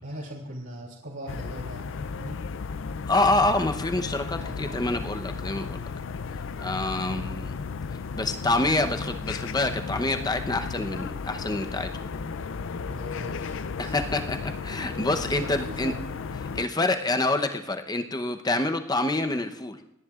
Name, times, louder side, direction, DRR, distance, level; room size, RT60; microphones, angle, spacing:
voice 1, 0.0-2.4 4.4-5.0 12.9-14.3 15.3-16.0, right 1 dB, 65° right, -6 dB, 3.0 m, -41 dB
Village Ambient, 1.3-16.7, left 5 dB, 60° left, 0.4 m, -34 dB
voice 2, 3.1-5.9 6.6-7.5 8.1-11.9 13.8-15.9 16.5-19.8, left 2 dB, 20° left, 6 dB, 0.8 m, -27 dB
27.5 x 10.5 x 2.4 m, 0.86 s
head